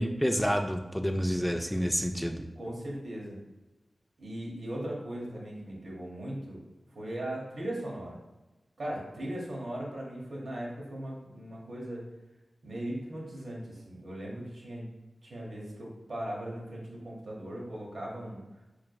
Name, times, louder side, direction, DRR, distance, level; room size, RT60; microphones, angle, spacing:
voice 1, 0.0-2.4, equal, 5° left, 4 dB, 0.3 m, -29 dB
voice 2, 2.6-3.4 4.2-6.6 6.9-8.2 8.8-12.0 12.6-14.9 15.2-18.4, right 1 dB, 80° right, -3 dB, 1.1 m, -38 dB
3.9 x 3.3 x 2.3 m, 1.0 s
cardioid pair, 45°, 0 cm